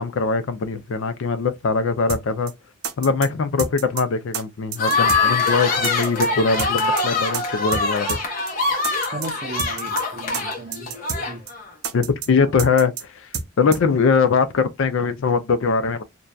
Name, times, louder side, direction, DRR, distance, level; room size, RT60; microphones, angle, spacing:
voice 1, 0.0-2.5 3.0-8.2 11.9-13.3 13.6-16.0, left 5 dB, 65° left, 0.4 m, -21 dB
sound 1, 2.1-2.2 2.5-2.6 2.8-3.3 3.6-4.0 4.3-4.4 4.7-5.2 5.5-5.6 5.8-6.3 6.6-7.0 7.3-7.4 7.7-7.8 8.1-8.2 8.5-8.6 8.8-9.3 9.6-10.0 10.3-10.4 10.7-11.2 11.5-11.6 11.8-12.3 12.6-13.0 13.3-13.5 13.7-13.8, right 7 dB, 85° right, 0.5 m, -28 dB
sound 2, 4.8-11.7, left 3 dB, 45° left, 0.9 m, -23 dB
voice 2, 9.1-10.9 11.2-11.4, right 2 dB, 35° right, 0.6 m, -35 dB
2.6 x 2.2 x 2.2 m
head